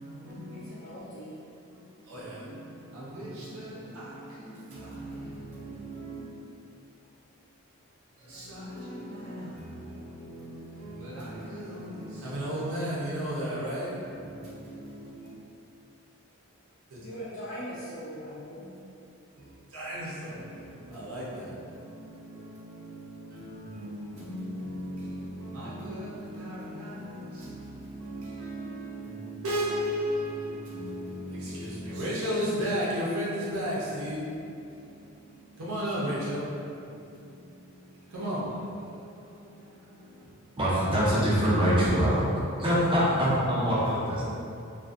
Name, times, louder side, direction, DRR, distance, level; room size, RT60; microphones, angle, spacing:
voice 1, 0.0-0.6 1.7-6.2 8.2-15.3 16.9-17.0 19.4-40.5 42.9-43.0, equal, 75° right, -8 dB, 0.6 m, -36 dB
voice 2, 0.5-1.5 17.0-18.7, equal, 75° left, -10 dB, 0.4 m, -40 dB
voice 3, 40.6-42.3 42.6-44.2, equal, 20° right, -8 dB, 0.5 m, -24 dB
2.5 x 2.3 x 2.4 m, 2.6 s
head